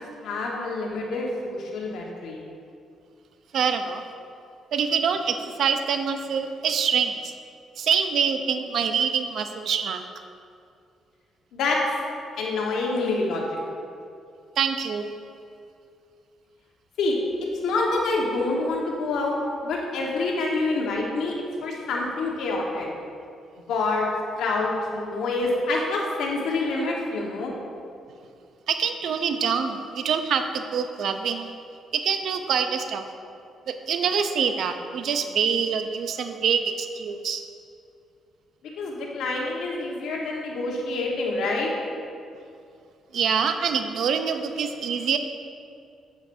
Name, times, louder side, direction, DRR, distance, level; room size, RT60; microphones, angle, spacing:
voice 1, 0.0-2.4 11.5-11.8 12.4-13.7 17.0-17.1 17.6-21.3 21.6-22.9 23.7-24.1 24.4-27.5 38.8-41.7, left 3 dB, 80° left, -1 dB, 1.2 m, -27 dB
voice 2, 3.5-4.0 4.7-7.3 7.8-10.0 14.6-15.1 28.7-31.5 31.9-33.0 33.7-37.4 43.1-45.2, right 6 dB, 65° right, 7 dB, 0.5 m, -25 dB
8.3 x 7.1 x 2.6 m, 2.4 s
cardioid pair, 90°, 0 cm